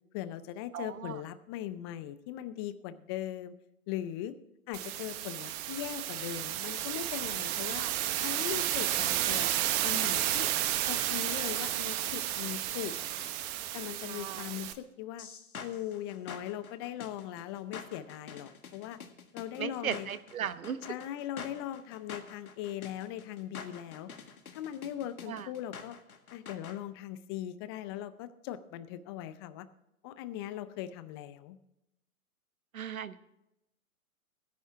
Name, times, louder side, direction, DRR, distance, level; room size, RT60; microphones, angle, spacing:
voice 1, 0.1-3.6 3.9-4.3 4.7-7.9 8.2-9.5 9.8-10.5 10.9-13.3 13.7-15.3 15.6-19.0 19.3-20.1 20.8-24.1 24.5-26.0 26.3-29.7 30.0-31.6, left 11 dB, 20° left, 14 dB, 0.5 m, -39 dB
voice 2, 0.7-1.1 7.8-7.9 14.1-14.4 19.6-20.8 25.3-25.4 32.7-33.2, right 9 dB, 70° right, 13 dB, 1.2 m, -37 dB
sound 1, 4.7-14.7, right 13 dB, 25° right, 0.9 m, -32 dB
sound 2, 15.2-26.8, left 6 dB, 75° left, 2.0 m, -47 dB
17.5 x 10.5 x 3.6 m, 0.85 s
figure-of-eight pair, 120°, 44 cm